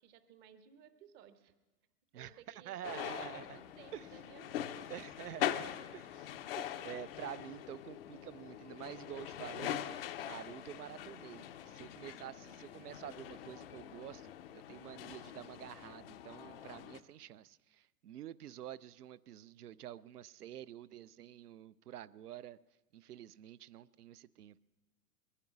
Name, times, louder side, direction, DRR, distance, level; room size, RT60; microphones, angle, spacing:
voice 1, 0.0-1.5 2.2-4.9, right 9 dB, 20° right, 0.7 m, -59 dB
voice 2, 2.1-3.6 3.9-4.1 4.9-9.8 10.2-22.6 22.9-24.6, right 11 dB, 70° right, 0.5 m, -48 dB
sound 1, 2.8-17.0, left 11 dB, 40° left, 0.6 m, -43 dB
22.0 x 9.8 x 6.0 m
figure-of-eight pair, 100°, 48 cm